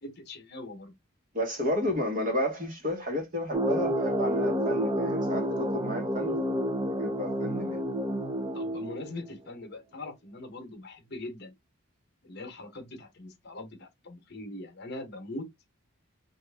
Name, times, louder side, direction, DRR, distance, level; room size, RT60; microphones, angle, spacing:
voice 1, 0.0-0.9 8.5-11.5 12.2-15.5, left 2 dB, 55° left, 0.9 m, -41 dB
voice 2, 1.3-6.3 7.0-7.8, left 1 dB, 40° right, 1.1 m, -32 dB
sound 1, 3.5-9.3, equal, 15° right, 0.5 m, -29 dB
3.0 x 2.5 x 3.4 m
head